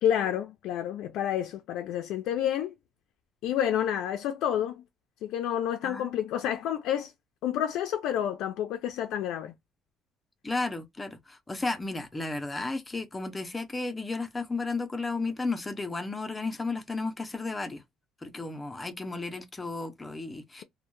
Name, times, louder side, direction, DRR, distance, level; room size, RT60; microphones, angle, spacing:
voice 1, 0.0-2.7 3.4-4.8 5.2-7.1 7.4-9.5, left 10 dB, 80° left, 0.3 m, -29 dB
voice 2, 10.4-17.8 18.2-20.6, left 3 dB, 15° left, 0.4 m, -33 dB
2.1 x 2.0 x 2.9 m
cardioid pair, 160°, 0 cm